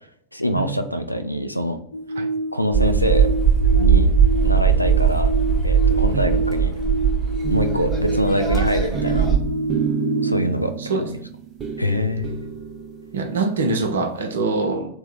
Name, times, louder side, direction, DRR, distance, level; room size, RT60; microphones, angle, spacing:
voice 1, 0.3-1.8 2.5-3.3 3.7-4.1 4.4-5.3 5.6-6.7 7.5-9.3 10.2-10.7 11.0-11.1 11.8-12.5, equal, 90° left, 9 dB, 0.3 m, -24 dB
sound 1, 1.9-10.5, right 1 dB, 70° left, 0.7 m, -27 dB
sound 2, 2.7-9.4, right 7 dB, 10° right, 1.1 m, -19 dB
sound 3, 7.4-13.5, right 6 dB, 25° right, 0.7 m, -29 dB
voice 2, 13.1-14.9, right 3 dB, 65° right, 6 dB, 0.6 m, -24 dB
3.5 x 2.2 x 4.3 m, 0.67 s
figure-of-eight pair, 90°, 0 cm